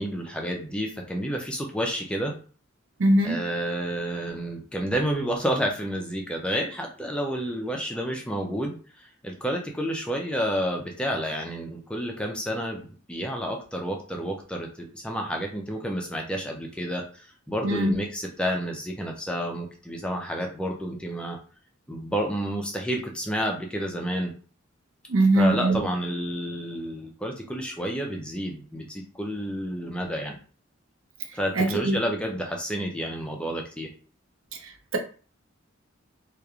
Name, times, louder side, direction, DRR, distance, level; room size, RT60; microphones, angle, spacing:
voice 1, 0.0-2.3 3.2-21.4 21.9-24.3 25.3-30.4 31.3-33.9, equal, 5° left, 0.4 m, -30 dB
voice 2, 3.0-3.3 17.6-18.0 25.1-25.8 31.6-32.0, right 1 dB, 75° right, 0.6 m, -21 dB
3.1 x 2.4 x 2.3 m
head